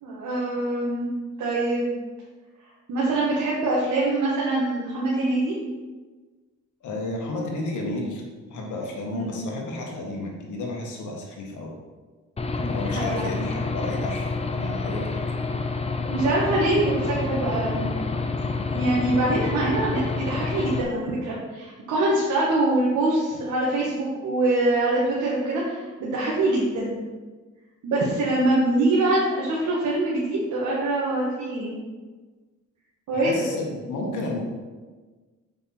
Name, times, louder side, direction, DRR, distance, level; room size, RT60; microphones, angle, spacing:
voice 1, 0.0-1.1 1.4-1.9 2.9-5.6 9.1-9.3 12.6-13.5 16.1-17.9 18.6-27.0 27.8-31.7 33.1-33.5, right 2 dB, 75° right, -5 dB, 1.7 m, -24 dB
voice 2, 6.8-8.2 8.5-11.7 12.6-15.2 33.1-34.4, left 2 dB, 75° left, 0 dB, 1.9 m, -32 dB
Aircraft / Engine, 12.4-20.8, left 3 dB, 20° left, 0.7 m, -28 dB
6.8 x 5.7 x 4.4 m, 1.3 s
cardioid pair, 90°, 30 cm